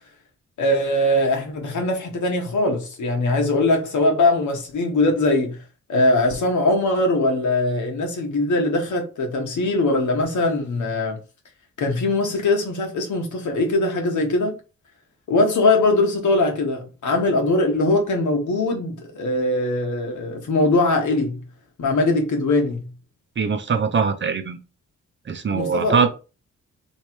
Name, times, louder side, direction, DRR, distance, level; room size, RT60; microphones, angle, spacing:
voice 1, 0.6-5.6 5.9-11.2 11.8-14.6 15.3-21.4 21.8-22.9 25.5-26.0, left 2 dB, 75° left, 1.4 m, -21 dB
voice 2, 23.4-24.6 25.3-26.1, right 6 dB, 40° right, 0.6 m, -22 dB
3.2 x 3.2 x 4.5 m
wide cardioid pair, 135°, 30 cm